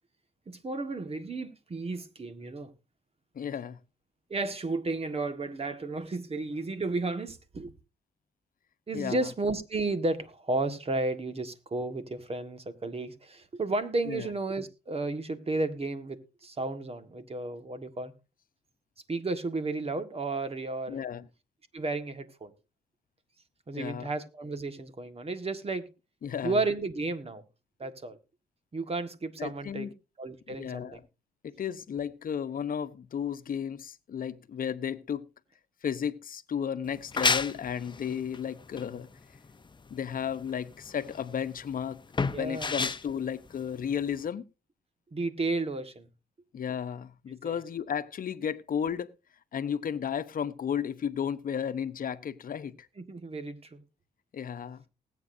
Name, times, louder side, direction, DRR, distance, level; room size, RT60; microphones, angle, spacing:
voice 1, 0.5-2.7 4.3-7.7 8.9-18.1 19.1-21.1 21.7-22.5 23.7-25.9 26.4-27.4 27.8-28.2 28.7-29.9 30.2-31.0 42.3-42.8 45.1-46.1 47.4-47.6 53.0-53.8, right 3 dB, 35° right, 1.7 m, -33 dB
voice 2, 3.3-3.8 8.9-9.3 14.1-14.3 20.9-21.3 23.7-24.1 26.2-26.6 29.4-29.9 30.5-31.0 31.4-35.3 35.8-39.1 39.9-42.0 42.3-44.4 46.5-49.1 49.5-52.9 54.3-54.8, left 8 dB, 60° left, 1.0 m, -33 dB
sound 1, 36.8-44.3, left 4 dB, 30° left, 0.8 m, -32 dB
20.0 x 8.4 x 2.7 m
supercardioid pair, 60°, 17 cm